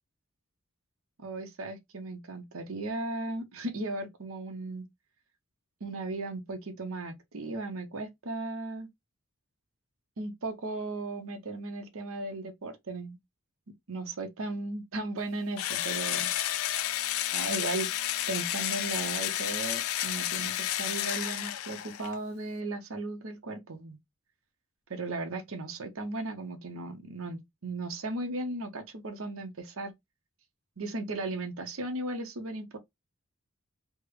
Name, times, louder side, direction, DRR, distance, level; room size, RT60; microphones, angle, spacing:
voice 1, 1.2-4.9 5.8-8.9 10.2-13.2 13.9-16.7 17.3-17.9 18.3-24.0 24.9-29.9 30.8-32.8, right 2 dB, 75° right, 0.8 m, -36 dB
Engine / Drill, 15.6-22.1, left 12 dB, 75° left, 0.3 m, -31 dB
3.4 x 2.1 x 3.2 m
head